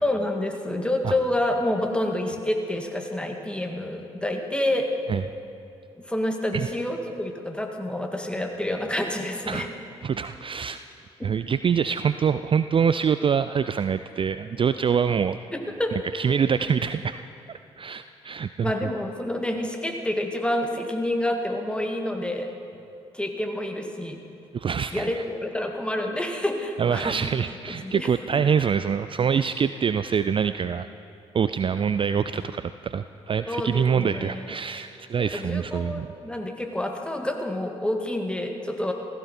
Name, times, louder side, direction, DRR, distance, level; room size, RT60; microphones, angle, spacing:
voice 1, 0.0-4.9 6.0-9.7 11.2-11.3 15.5-16.0 18.6-22.5 23.1-24.2 24.9-27.2 27.8-28.4 33.5-34.6 35.2-38.9, left 1 dB, 5° left, 3 dB, 2.0 m, -28 dB
voice 2, 10.0-10.8 11.2-15.4 15.9-17.2 17.8-18.7 24.5-25.2 26.8-30.9 31.3-36.1, right 7 dB, 35° right, 12 dB, 0.4 m, -25 dB
16.0 x 15.0 x 4.3 m, 2.6 s
hypercardioid pair, 40°, 15 cm